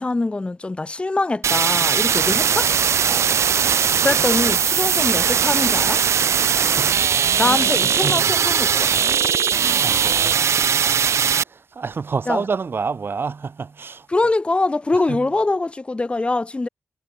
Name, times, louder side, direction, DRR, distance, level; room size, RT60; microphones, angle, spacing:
voice 1, 0.0-2.7 4.0-6.0 7.4-8.9 12.3-12.4 14.1-16.7, left 2 dB, 25° left, 1.3 m, -23 dB
sound 1, 1.4-11.4, right 7 dB, 80° right, 0.9 m, -19 dB
voice 2, 2.2-2.5 3.1-3.6 4.0-4.2 4.5-5.0 6.5-7.8 8.0-8.3 9.5-11.2 11.4-14.1 14.9-15.3, right 5 dB, 50° right, 7.1 m, -31 dB
wide cardioid pair, 100°, 5 cm